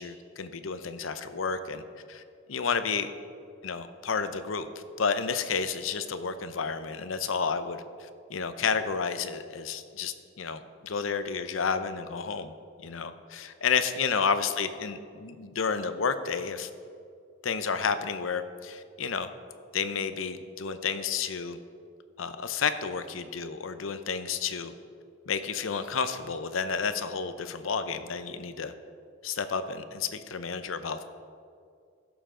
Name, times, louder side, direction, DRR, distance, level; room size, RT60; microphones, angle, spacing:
voice 1, 0.0-1.8 2.1-2.2 2.5-3.1 3.6-4.7 5.0-12.5 12.8-16.7 17.4-19.3 19.7-21.6 22.2-24.7 25.3-28.7 29.2-31.0, left 5 dB, 85° left, 11 dB, 0.7 m, -31 dB
16.5 x 7.0 x 3.8 m, 2.3 s
head